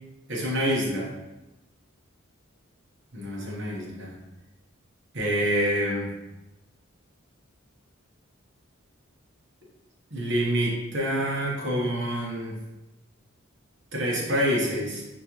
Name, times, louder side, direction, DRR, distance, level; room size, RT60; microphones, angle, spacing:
voice 1, 0.3-1.1 3.1-4.2 5.1-6.1 10.1-12.6 13.9-15.0, equal, 60° right, -3 dB, 1.1 m, -27 dB
4.4 x 3.6 x 3.0 m, 1.0 s
head